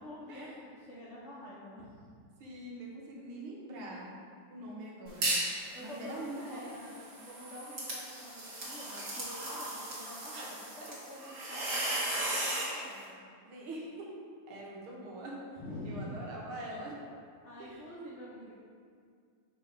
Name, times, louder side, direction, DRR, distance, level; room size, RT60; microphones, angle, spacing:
voice 1, 0.0-2.1 5.7-13.2 15.6-16.7 17.4-18.5, left 1 dB, 75° left, -6 dB, 0.6 m, -47 dB
voice 2, 2.4-4.2 4.5-5.4 5.8-6.6 13.4-14.1 14.5-15.3 15.8-16.9 17.6-18.1, right 1 dB, 75° right, -3 dB, 1.9 m, -43 dB
sound 1, 5.1-5.6 6.0-12.8, right 1 dB, 40° right, 1.5 m, -36 dB
5.5 x 4.0 x 4.3 m, 2.1 s
omnidirectional pair, 2.4 m